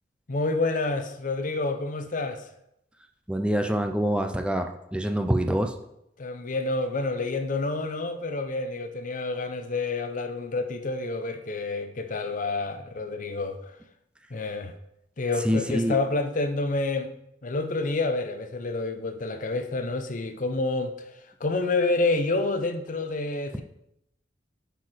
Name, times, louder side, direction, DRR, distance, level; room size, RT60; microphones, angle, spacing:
voice 1, 0.3-2.4 6.2-13.7 14.3-14.7 15.2-17.1 17.4-20.9 21.4-23.6, left 3 dB, 45° left, 0.7 m, -28 dB
voice 2, 3.3-5.7 15.4-16.0, equal, 5° right, 0.5 m, -25 dB
7.9 x 4.5 x 4.9 m
head